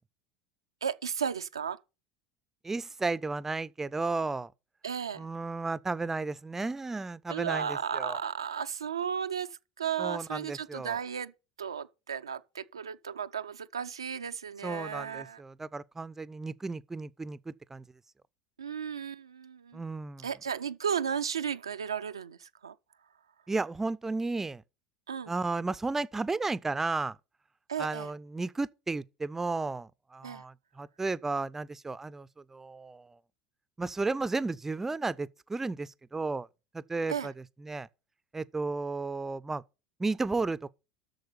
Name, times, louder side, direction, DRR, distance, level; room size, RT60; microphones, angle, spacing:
voice 1, 0.8-1.8 4.8-5.3 7.3-11.3 11.6-15.4 18.6-19.8 20.2-22.7 25.1-25.3 27.7-28.1 30.2-30.4 37.1-37.3, right 7 dB, 85° right, 0.4 m, -34 dB
voice 2, 2.6-4.5 5.2-8.2 10.0-11.0 14.6-17.8 19.7-20.3 23.5-24.6 25.3-27.2 27.8-33.2 33.8-36.5 36.7-37.3 37.6-37.9 38.3-39.6 40.0-40.7, right 3 dB, 15° right, 0.5 m, -33 dB
7.9 x 6.6 x 6.8 m
figure-of-eight pair, 75°, 3 cm